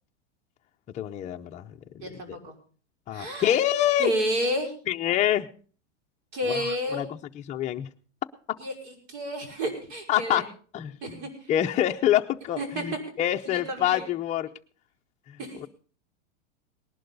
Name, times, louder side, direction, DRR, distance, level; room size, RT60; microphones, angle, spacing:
voice 1, 0.9-2.4 3.1-4.1 4.9-5.5 6.5-6.6 6.9-7.2 7.5-7.9 10.1-10.4 10.7-11.2 11.5-14.5 15.3-15.7, left 12 dB, 20° left, 4 dB, 0.6 m, -26 dB
voice 2, 2.0-2.5 3.1-3.6 4.0-4.7 6.3-7.1 8.6-10.4 11.0-11.5 12.6-12.9 13.5-14.1 15.4-15.6, equal, 60° right, 2 dB, 5.6 m, -31 dB
19.0 x 11.5 x 4.0 m, 0.41 s
supercardioid pair, 140°, 36 cm